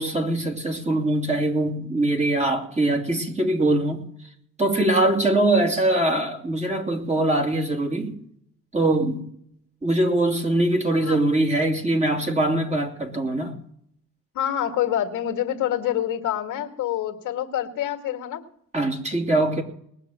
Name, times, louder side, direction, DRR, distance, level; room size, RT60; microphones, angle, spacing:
voice 1, 0.0-4.1 4.6-8.2 8.7-9.3 9.8-13.6 18.7-19.6, right 1 dB, 20° right, 2 dB, 2.7 m, -22 dB
voice 2, 14.3-18.4, left 11 dB, 85° left, 4 dB, 1.9 m, -26 dB
20.0 x 6.7 x 7.5 m, 0.69 s
cardioid pair, 90°, 30 cm